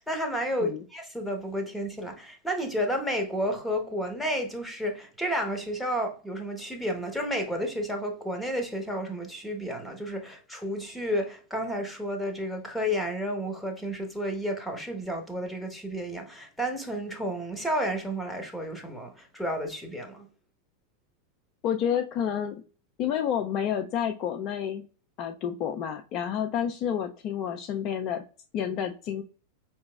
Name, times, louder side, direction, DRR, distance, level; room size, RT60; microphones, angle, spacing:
voice 1, 0.0-20.2, equal, ahead, 0.9 m, -31 dB
voice 2, 21.6-22.6 23.0-24.8 25.2-28.2 28.5-29.2, left 9 dB, 35° left, 0.4 m, -29 dB
5.2 x 2.9 x 2.2 m
figure-of-eight pair, 90°, 0 cm